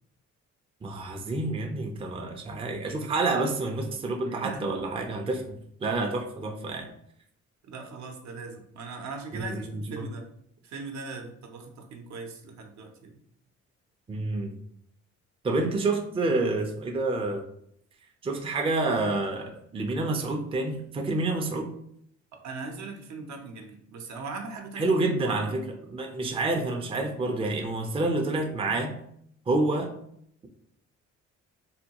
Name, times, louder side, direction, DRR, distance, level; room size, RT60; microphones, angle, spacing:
voice 1, 0.8-5.6 5.8-6.9 9.3-10.1 14.1-14.6 15.4-17.4 18.2-21.7 24.8-25.6 25.9-28.9 29.5-29.9, right 2 dB, 20° right, 3 dB, 0.4 m, -28 dB
voice 2, 4.3-4.8 7.6-10.3 10.6-13.1 22.3-25.5, right 4 dB, 65° right, 3 dB, 0.7 m, -40 dB
3.4 x 2.2 x 2.8 m, 0.69 s
cardioid pair, 90°, 30 cm